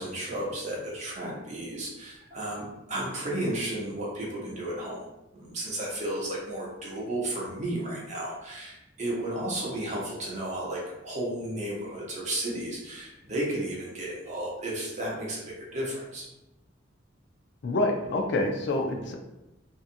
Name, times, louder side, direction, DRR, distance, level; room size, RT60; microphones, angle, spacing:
voice 1, 0.0-5.0 5.3-16.3, right 1 dB, 40° right, -3 dB, 0.8 m, -33 dB
voice 2, 17.6-19.2, left 2 dB, 65° left, 3 dB, 0.4 m, -27 dB
2.7 x 2.5 x 2.5 m, 0.93 s
head